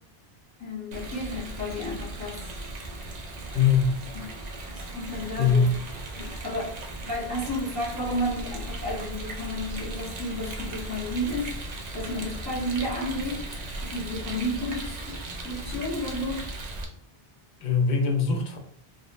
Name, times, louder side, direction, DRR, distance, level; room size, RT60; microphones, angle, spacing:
voice 1, 0.6-2.5 4.1-4.3 4.7-5.8 6.2-6.8 7.0-11.6 11.9-13.6 13.8-15.2 15.4-16.5, left 1 dB, 15° left, -7 dB, 0.9 m, -32 dB
Rain, 0.9-16.8, right 2 dB, 50° right, 0.6 m, -37 dB
voice 2, 3.5-3.9 5.4-5.7 17.6-18.6, left 6 dB, 55° left, 3 dB, 0.6 m, -22 dB
3.5 x 2.1 x 2.5 m, 0.72 s
omnidirectional pair, 1.0 m